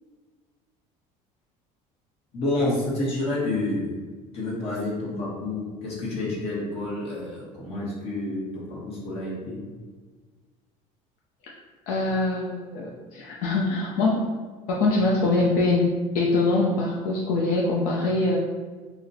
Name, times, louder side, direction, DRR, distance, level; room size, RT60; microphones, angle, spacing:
voice 1, 2.3-3.9 4.3-9.6, left 2 dB, 40° left, -5 dB, 1.1 m, -29 dB
voice 2, 11.9-14.2 14.7-15.9 16.1-18.4, left 2 dB, 70° left, -3 dB, 0.5 m, -23 dB
4.0 x 2.1 x 2.7 m, 1.4 s
cardioid pair, 150°, 16 cm